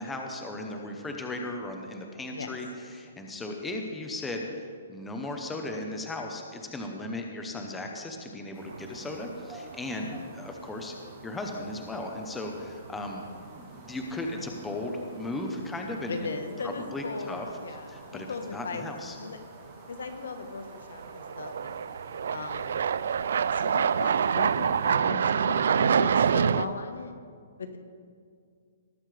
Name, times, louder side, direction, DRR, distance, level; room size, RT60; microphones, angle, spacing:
voice 1, 0.0-4.6 4.9-10.1 10.3-10.9 11.2-13.3 13.6-16.3 16.6-17.5 17.9-19.2, left 2 dB, 5° left, 2 dB, 0.8 m, -36 dB
sound 1, 8.5-24.9, right 2 dB, 15° right, 2.3 m, -51 dB
sound 2, 8.7-9.3 9.7-9.8 12.7-12.8 14.1-14.4 14.7-14.8 20.1-20.2 21.0-26.7, right 7 dB, 65° right, 0.3 m, -26 dB
voice 2, 10.0-10.3 16.1-19.4 19.9-21.8 22.3-22.9 23.5-27.1 27.6-27.8, left 4 dB, 85° left, 7 dB, 1.2 m, -38 dB
19.0 x 7.6 x 3.4 m, 2.2 s
hypercardioid pair, 165°, 0 cm